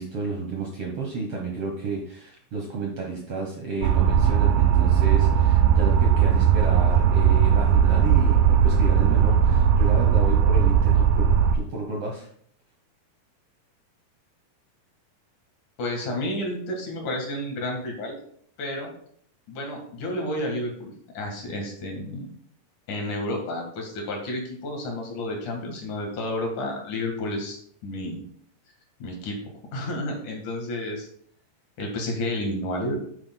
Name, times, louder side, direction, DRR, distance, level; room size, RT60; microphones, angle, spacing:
voice 1, 0.0-12.3, right 3 dB, 60° right, -1 dB, 1.6 m, -32 dB
sound 1, 3.8-11.6, right 8 dB, 90° right, 2.4 m, -18 dB
voice 2, 15.8-18.2 18.6-18.9 19.5-22.3 22.9-28.2 29.0-29.4 29.7-31.1 31.8-33.0, left 1 dB, 65° left, 1 dB, 3.1 m, -31 dB
9.9 x 8.7 x 2.3 m, 0.62 s
omnidirectional pair, 3.9 m